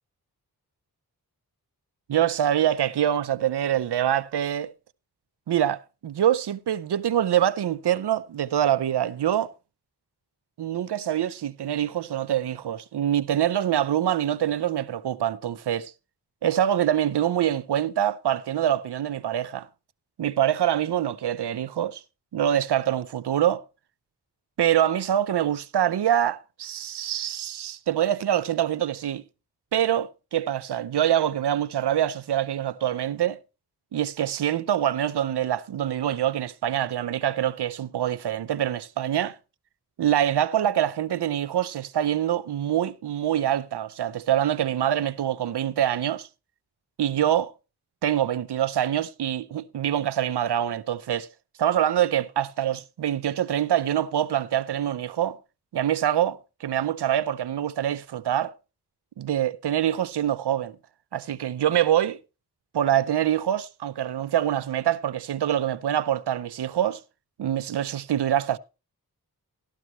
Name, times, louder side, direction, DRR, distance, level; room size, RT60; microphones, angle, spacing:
voice 1, 2.1-4.7 5.5-9.5 10.6-15.9 16.4-19.7 20.2-22.0 22.3-23.6 24.6-29.2 29.7-33.4 33.9-39.3 40.0-46.3 47.0-47.5 48.0-51.3 51.6-55.4 55.7-58.5 59.2-60.8 61.1-62.2 62.7-67.0 67.4-68.6, right 11 dB, 90° right, 0.7 m, -25 dB
13.5 x 12.5 x 3.1 m
wide cardioid pair, 60°, 39 cm